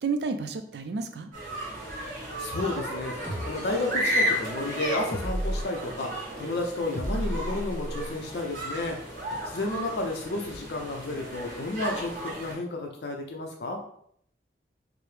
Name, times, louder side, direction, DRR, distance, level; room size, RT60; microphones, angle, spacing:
voice 1, 0.0-1.3, right 4 dB, 75° right, 8 dB, 0.4 m, -31 dB
sound 1, 1.3-12.5, equal, 45° right, 1.3 m, -33 dB
voice 2, 2.1-9.0 9.4-13.8, left 2 dB, 70° left, 2 dB, 0.5 m, -32 dB
sound 2, 3.2-3.5 5.1-5.6 6.9-8.1, equal, 10° left, 0.7 m, -31 dB
4.7 x 2.0 x 3.2 m, 0.67 s
head